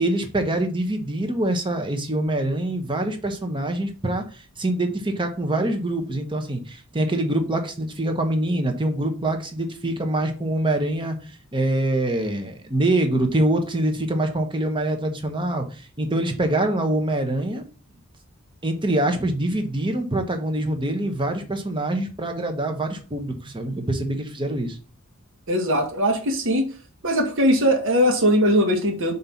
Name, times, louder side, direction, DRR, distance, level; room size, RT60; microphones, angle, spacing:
voice 1, 0.0-11.2 11.5-17.6 18.6-24.8, right 1 dB, 20° right, 1.1 m, -24 dB
voice 2, 25.5-26.7 27.0-29.1, equal, 60° right, 1.6 m, -20 dB
5.5 x 4.0 x 5.7 m
head